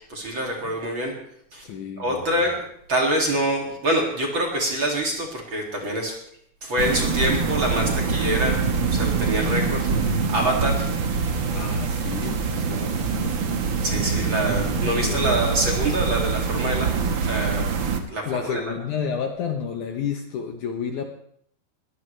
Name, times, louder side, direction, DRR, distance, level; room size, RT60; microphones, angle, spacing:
voice 1, 0.1-1.1 1.5-1.6 2.0-6.2 6.6-10.9 13.8-17.8 18.1-18.7, right 1 dB, 35° right, 0 dB, 2.7 m, -26 dB
voice 2, 1.6-2.4 11.5-13.1 15.0-15.5 18.3-21.0, left 7 dB, 70° left, 4 dB, 2.1 m, -31 dB
sound 1, 6.8-18.0, right 5 dB, 75° right, 1.1 m, -24 dB
21.5 x 16.5 x 3.3 m, 0.67 s
omnidirectional pair, 4.3 m